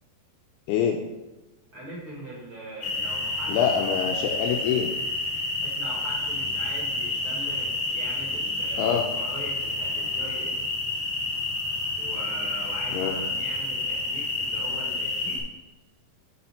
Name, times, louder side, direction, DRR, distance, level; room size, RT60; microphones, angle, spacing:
voice 1, 1.7-3.7 5.6-10.6 11.9-15.4, right 1 dB, 65° right, -4 dB, 1.3 m, -41 dB
sound 1, 2.8-15.4, left 2 dB, 45° left, 1.4 m, -29 dB
voice 2, 3.5-4.9 8.8-9.1 12.9-13.1, left 8 dB, 80° left, 2 dB, 2.4 m, -25 dB
7.7 x 5.6 x 4.3 m, 1.1 s
omnidirectional pair, 4.9 m